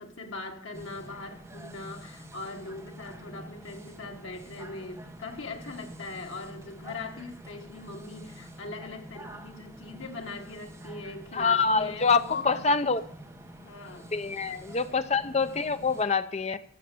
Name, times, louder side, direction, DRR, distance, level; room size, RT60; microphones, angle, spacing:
voice 1, 0.0-12.6 13.6-14.1, left 3 dB, 85° left, 1.6 m, -41 dB
sound 1, 0.7-16.0, right 1 dB, 15° right, 1.6 m, -47 dB
voice 2, 11.3-13.0 14.1-16.6, left 4 dB, 35° left, 0.6 m, -25 dB
15.0 x 6.4 x 7.8 m
head